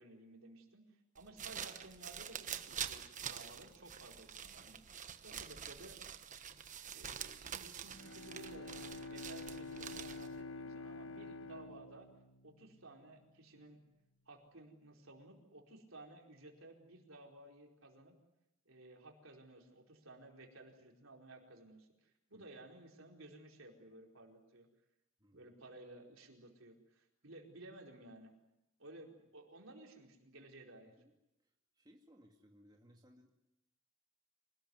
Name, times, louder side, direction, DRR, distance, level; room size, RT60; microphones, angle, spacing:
voice 1, 0.0-4.8 5.2-6.0 6.9-12.1 12.4-13.8 14.3-18.1 18.6-24.7 25.3-28.3 28.8-30.9, right 2 dB, 65° right, 2 dB, 4.7 m, -56 dB
sound 1, 1.2-10.4, right 8 dB, 35° right, 1.2 m, -46 dB
Bowed string instrument, 7.9-13.1, left 2 dB, 65° left, 1.4 m, -48 dB
voice 2, 25.2-25.5 30.8-31.1 31.4-33.3, equal, 20° right, 1 dB, 2.3 m, -65 dB
26.5 x 19.5 x 9.7 m, 0.88 s
head